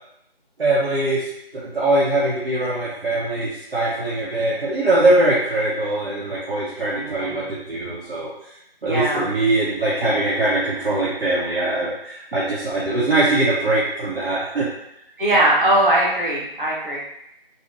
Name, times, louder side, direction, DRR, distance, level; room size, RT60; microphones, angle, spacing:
voice 1, 0.6-8.3 8.8-14.7, right 2 dB, 85° right, -7 dB, 0.7 m, -22 dB
voice 2, 6.9-7.5 8.8-9.3 15.2-17.0, right 1 dB, 55° right, -5 dB, 0.9 m, -20 dB
2.7 x 2.1 x 2.4 m, 0.80 s
figure-of-eight pair, 175°, 30 cm